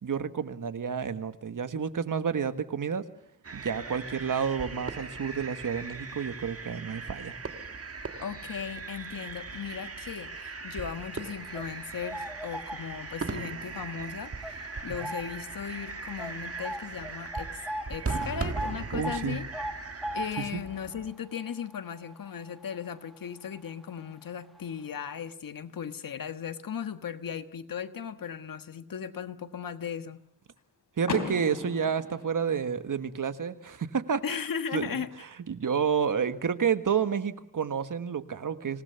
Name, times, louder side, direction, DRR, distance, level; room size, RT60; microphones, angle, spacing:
voice 1, 0.0-3.1 3.5-7.4 18.9-19.4 20.4-20.6 31.0-34.2 34.7-35.0 35.5-38.8, right 7 dB, 70° right, 10 dB, 1.6 m, -30 dB
sound 1, 3.4-21.1, right 4 dB, 45° right, 1.7 m, -39 dB
voice 2, 8.2-17.6 17.9-19.4 20.1-30.2 34.2-35.1, left 7 dB, 85° left, 9 dB, 1.5 m, -37 dB
sound 2, 11.3-13.3 13.7-13.9 14.4-15.5 15.8-15.9 16.2-23.2 23.5-23.7 24.6-24.7 25.0-25.1, equal, ahead, 1.4 m, -39 dB
Car / Door, 31.0-33.0, left 4 dB, 70° left, 3.4 m, -36 dB
26.5 x 19.0 x 7.0 m, 0.74 s
wide cardioid pair, 85°, 33 cm